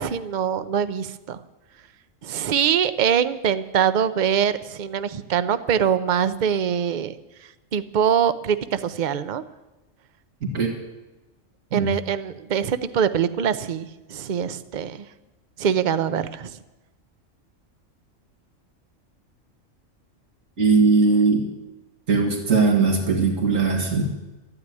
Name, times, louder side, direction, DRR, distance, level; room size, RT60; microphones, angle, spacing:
voice 1, 0.0-1.4 2.2-7.1 7.7-9.4 11.7-15.0 15.6-16.5, right 8 dB, 45° right, 13 dB, 0.7 m, -23 dB
voice 2, 10.4-10.8 11.7-11.9 20.6-21.5 22.1-24.0, right 4 dB, 80° right, 1 dB, 2.6 m, -19 dB
13.5 x 9.6 x 9.7 m, 1.1 s
omnidirectional pair, 1.4 m